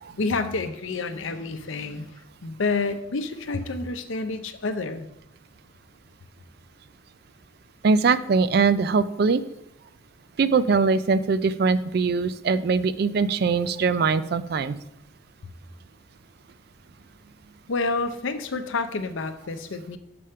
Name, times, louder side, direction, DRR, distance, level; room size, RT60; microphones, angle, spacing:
voice 1, 0.2-5.1 17.7-20.0, left 3 dB, 75° left, 9 dB, 0.6 m, -29 dB
voice 2, 7.8-9.4 10.4-14.8, right 4 dB, 50° right, 14 dB, 0.3 m, -22 dB
6.9 x 5.0 x 5.5 m, 0.85 s
head